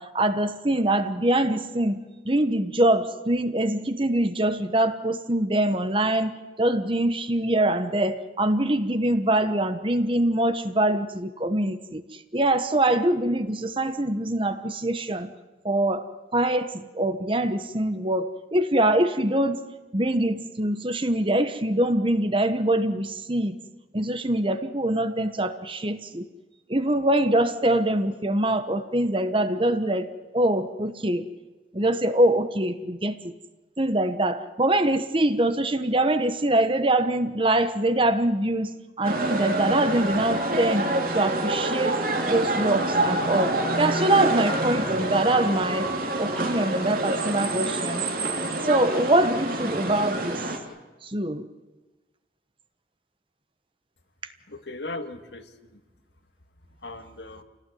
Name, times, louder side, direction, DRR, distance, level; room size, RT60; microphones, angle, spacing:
voice 1, 0.0-2.0 2.2-6.3 6.6-15.3 15.6-19.6 19.9-23.5 23.9-26.3 26.7-31.2 31.7-33.3 33.8-40.9 41.1-42.0 42.3-45.9 46.2-48.0 48.6-50.4 51.0-51.4, right 1 dB, 30° right, 10 dB, 1.2 m, -24 dB
sound 1, 39.0-50.6, right 2 dB, 50° right, 3.1 m, -27 dB
voice 2, 54.5-55.8 56.8-57.4, left 2 dB, 70° left, 7 dB, 1.9 m, -38 dB
29.0 x 18.0 x 9.3 m, 1.2 s
head